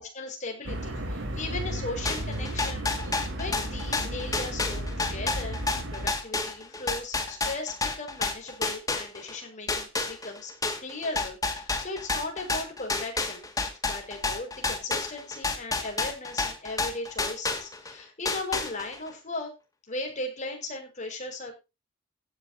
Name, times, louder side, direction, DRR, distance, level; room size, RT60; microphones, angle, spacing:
voice 1, 0.0-2.9 3.3-5.6 5.9-10.5 10.8-13.5 13.9-19.5 19.9-21.6, left 2 dB, 40° left, 2 dB, 5.7 m, -37 dB
sound 1, 0.6-6.1, equal, 75° right, 3.8 m, -34 dB
sound 2, 2.1-9.4 9.7-17.9 18.3-19.1, left 3 dB, 20° left, 2.3 m, -30 dB
16.5 x 11.0 x 2.9 m, 0.27 s
head